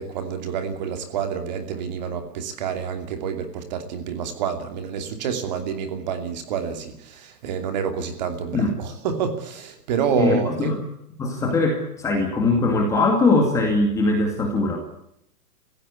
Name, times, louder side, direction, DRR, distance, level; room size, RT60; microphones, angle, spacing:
voice 1, 0.0-10.7, right 7 dB, 25° right, 6 dB, 2.7 m, -28 dB
voice 2, 10.1-10.8 11.2-14.8, left 2 dB, 5° left, 1 dB, 2.2 m, -21 dB
29.5 x 16.5 x 8.4 m, 0.76 s
hypercardioid pair, 175°, 47 cm